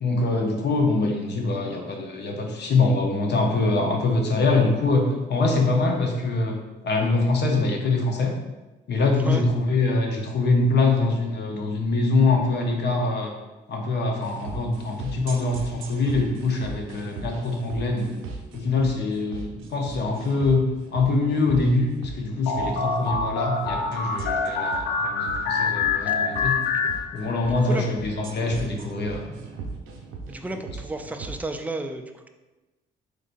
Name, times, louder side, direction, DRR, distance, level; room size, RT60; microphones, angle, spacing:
voice 1, 0.0-6.6 6.8-8.3 8.9-13.3 13.7-18.1 18.5-20.6 20.9-26.5 27.1-29.3, left 3 dB, 55° left, 2 dB, 0.8 m, -24 dB
sound 1, 14.2-31.4, right 4 dB, 85° right, 0.6 m, -38 dB
sound 2, 22.5-27.6, left 4 dB, 85° left, 0.5 m, -26 dB
voice 2, 27.5-27.8 30.3-32.3, right 2 dB, 5° right, 6 dB, 0.3 m, -33 dB
3.8 x 3.3 x 2.5 m, 1.1 s
supercardioid pair, 65°, 21 cm